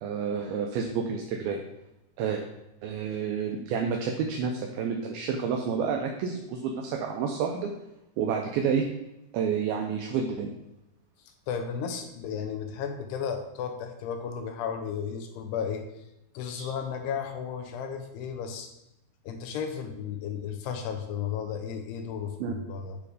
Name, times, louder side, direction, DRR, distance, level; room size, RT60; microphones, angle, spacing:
voice 1, 0.0-1.6 2.2-2.4 2.8-7.7 8.2-8.9 9.3-10.5 16.5-16.7 22.4-22.5, right 6 dB, 80° right, 2 dB, 2.2 m, -29 dB
voice 2, 11.3-16.0 16.3-18.7 19.2-23.0, left 7 dB, 85° left, 6 dB, 2.7 m, -34 dB
9.1 x 3.5 x 4.9 m, 0.92 s
omnidirectional pair, 4.8 m